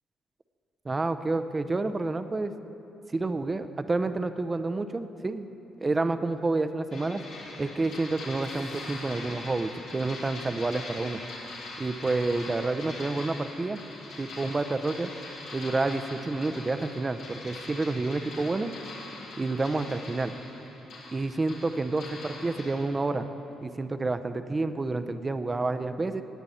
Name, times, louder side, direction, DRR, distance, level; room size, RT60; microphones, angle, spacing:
voice 1, 0.8-2.5 3.1-5.5 5.8-7.2 7.6-11.2 11.8-13.8 14.2-15.1 15.5-18.7 19.4-20.4 21.1-23.3 23.6-26.2, right 3 dB, 30° right, 10 dB, 0.6 m, -29 dB
sound 1, 6.9-22.8, left 2 dB, 85° left, 2.5 m, -42 dB
17.5 x 9.5 x 4.3 m, 3.0 s
supercardioid pair, 70°, 0 cm